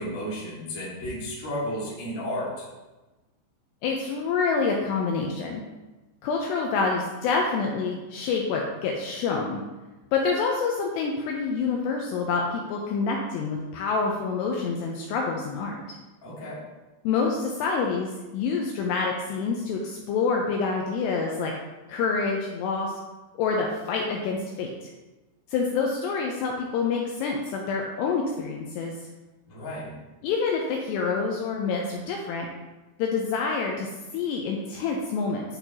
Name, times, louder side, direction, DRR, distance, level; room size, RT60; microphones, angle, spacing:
voice 1, 0.0-2.6 16.2-16.6 29.5-29.9, equal, 35° left, -8 dB, 1.3 m, -33 dB
voice 2, 3.8-5.6 6.2-9.6 10.1-15.8 17.0-21.5 21.9-23.0 23.4-24.9 25.5-28.9 30.2-32.5 33.0-35.4, left 4 dB, 85° left, 0 dB, 2.5 m, -27 dB
10.5 x 4.5 x 2.9 m, 1.1 s
omnidirectional pair, 5.4 m